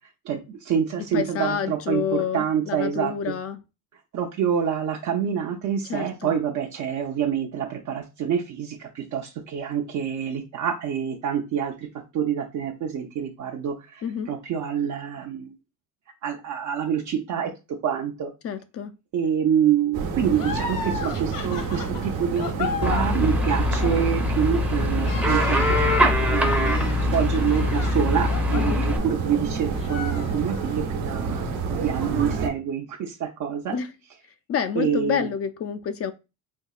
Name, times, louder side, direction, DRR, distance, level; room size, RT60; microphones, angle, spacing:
voice 1, 0.2-3.3 4.1-11.9 12.1-15.5 16.2-17.5 17.8-18.3 19.1-25.7 26.3-33.8 34.8-35.3, right 8 dB, 55° right, 0.7 m, -26 dB
voice 2, 1.1-3.6 5.9-6.4 14.0-14.3 18.4-18.9 28.6-28.9 33.7-33.9 34.5-36.1, left 7 dB, 40° left, 0.4 m, -28 dB
sound 1, 19.9-32.5, right 5 dB, 80° right, 1.1 m, -29 dB
sound 2, 20.3-29.4 29.8-30.8, left 5 dB, 65° left, 1.0 m, -36 dB
sound 3, 22.8-29.0, left 2 dB, 5° right, 0.6 m, -23 dB
4.5 x 2.7 x 2.4 m
cardioid pair, 115°, 36 cm